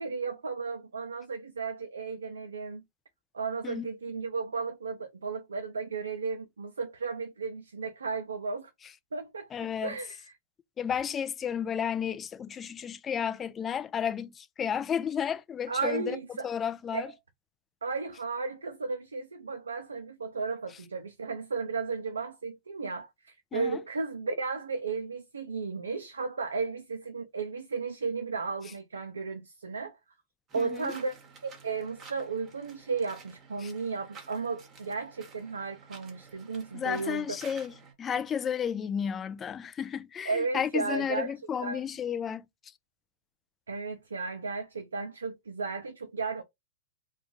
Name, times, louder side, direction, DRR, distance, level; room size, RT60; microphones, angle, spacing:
voice 1, 0.0-2.8 3.3-8.7 9.1-10.3 15.7-16.5 16.9-17.0 17.8-30.0 30.5-31.1 31.4-37.4 40.3-41.3 41.6-41.8 43.7-46.4, right 4 dB, 90° right, 0.4 m, -34 dB
voice 2, 9.5-10.0 10.8-16.2 16.4-17.1 23.5-23.8 30.6-30.9 33.6-33.7 36.7-42.4, left 8 dB, 20° left, 0.3 m, -32 dB
sound 1, 30.5-37.9, right 4 dB, 30° right, 1.0 m, -52 dB
2.4 x 2.3 x 3.1 m
hypercardioid pair, 115°, 0 cm